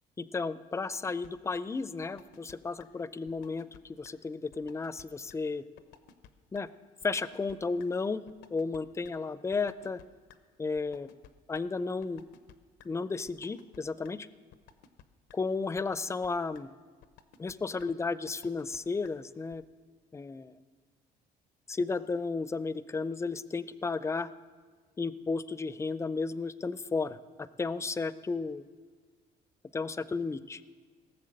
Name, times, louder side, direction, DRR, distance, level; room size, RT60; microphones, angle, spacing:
voice 1, 0.2-5.6 6.5-6.7 7.0-8.2 8.5-10.0 10.6-11.1 11.5-12.2 12.8-14.3 15.3-16.7 17.4-19.6 20.1-20.5 21.7-24.3 25.0-28.6 29.7-30.6, left 4 dB, 15° left, 15 dB, 0.4 m, -33 dB
sound 1, 0.9-1.3 1.5-1.6 2.0-2.5 2.8-2.9 3.3-3.8 4.0-4.1 4.5-5.0 5.3-5.4 5.8-6.3 6.5-6.6 7.0-7.5 7.8-7.9 8.3-9.1 9.5-10.4 10.8-11.6 12.0-12.5 12.8-12.9 13.3-13.8 14.0-14.1 14.5-15.0 15.3-15.4 15.8-16.3 16.5-16.6 17.0-17.5 17.8-17.9 18.3-18.8 19.0-19.1 19.5-19.6, left 9 dB, 90° left, 0.8 m, -54 dB
18.0 x 7.2 x 6.4 m, 1.5 s
cardioid pair, 110°, 17 cm